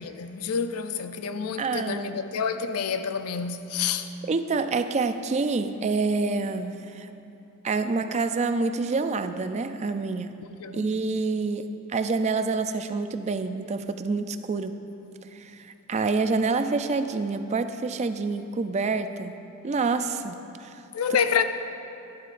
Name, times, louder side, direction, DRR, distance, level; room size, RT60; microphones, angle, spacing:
voice 1, 0.0-4.1 10.6-10.9 20.9-21.4, left 6 dB, 85° left, 0.5 m, -28 dB
voice 2, 1.6-2.1 4.2-7.1 7.6-10.4 10.7-14.8 15.3-19.3 19.6-20.8, right 4 dB, 30° right, 0.3 m, -27 dB
12.0 x 11.5 x 2.5 m
head